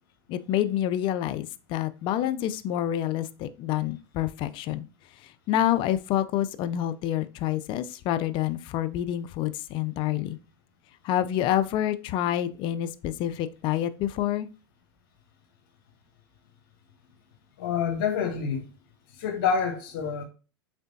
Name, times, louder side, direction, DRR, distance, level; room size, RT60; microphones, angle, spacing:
voice 1, 0.3-4.9 5.5-10.4 11.0-14.5, left 12 dB, 45° left, 0.3 m, -27 dB
voice 2, 17.6-18.7 19.2-20.2, left 6 dB, 65° left, 1.1 m, -27 dB
3.7 x 3.3 x 2.6 m
hypercardioid pair, 100°, 12 cm